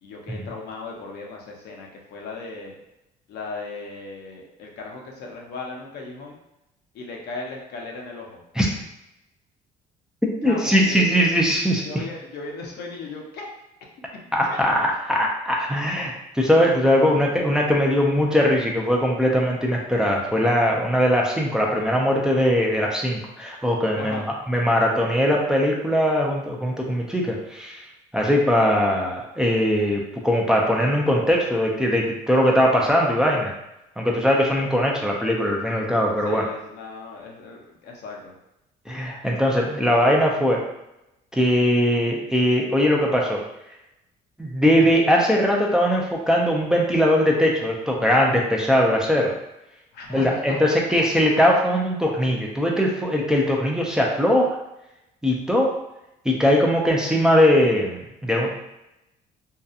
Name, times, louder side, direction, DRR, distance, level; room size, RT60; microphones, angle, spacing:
voice 1, 0.0-2.7 3.3-6.4 6.9-8.4 10.4-11.2 11.8-13.5 14.5-14.6 16.9-17.3 24.0-24.3 36.2-38.3 49.9-51.1, left 3 dB, 75° left, -1 dB, 0.7 m, -37 dB
voice 2, 10.4-12.0 14.3-27.9 28.1-33.5 34.0-36.5 38.9-40.6 41.3-43.4 44.4-49.3 50.1-54.6 55.2-55.7 56.2-58.5, equal, 5° right, -2 dB, 0.4 m, -20 dB
2.7 x 2.3 x 2.4 m, 0.89 s
cardioid pair, 110°, 17 cm